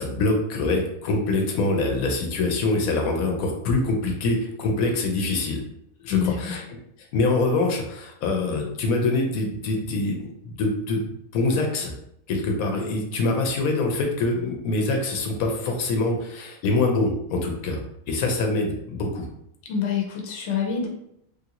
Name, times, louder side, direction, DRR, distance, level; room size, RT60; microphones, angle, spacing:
voice 1, 0.0-5.6 6.0-6.6 7.0-11.9 12.3-17.8 18.1-19.3, left 2 dB, 85° left, 2 dB, 1.1 m, -24 dB
voice 2, 6.1-6.6 19.7-20.9, left 7 dB, 60° left, 1 dB, 0.9 m, -26 dB
3.3 x 2.5 x 2.8 m, 0.74 s
omnidirectional pair, 1.5 m